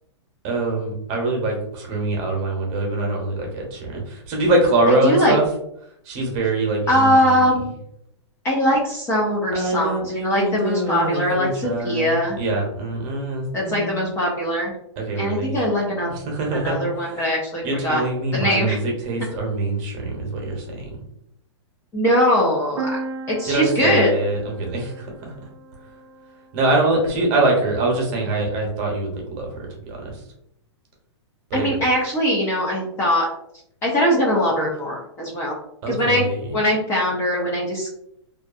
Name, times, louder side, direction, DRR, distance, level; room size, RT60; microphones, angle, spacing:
voice 1, 0.4-5.4 6.1-7.5 9.5-14.0 15.0-15.6 16.3-16.8 17.0-17.1 17.6-21.0 23.4-25.0 26.5-30.1 31.5-31.7 35.8-36.6, right 2 dB, 35° right, 0 dB, 0.8 m, -24 dB
voice 2, 4.9-5.3 6.9-7.7 8.4-12.4 13.5-14.7 15.1-16.1 16.5-18.0 18.3-18.8 21.9-22.9 23.3-24.1 31.5-33.3 33.8-35.6 35.9-36.3 36.5-37.9, equal, 15° left, -3 dB, 0.4 m, -21 dB
sound 1, 22.8-26.5, right 3 dB, 75° right, 0.4 m, -35 dB
2.5 x 2.3 x 2.4 m, 0.75 s
hypercardioid pair, 145°, 15 cm